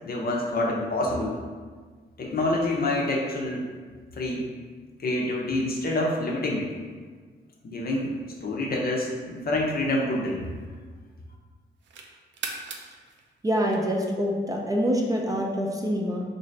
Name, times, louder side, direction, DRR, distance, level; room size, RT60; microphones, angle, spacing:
voice 1, 0.0-1.4 2.2-3.7 4.2-4.5 5.0-6.7 7.6-10.5, left 1 dB, 55° left, -1 dB, 0.6 m, -27 dB
sound 1, 10.2-11.1 11.5-14.5, right 4 dB, 75° right, 0.5 m, -41 dB
voice 2, 13.4-16.2, equal, 20° right, -1 dB, 0.5 m, -25 dB
3.8 x 2.6 x 3.2 m, 1.5 s
cardioid pair, 90°, 19 cm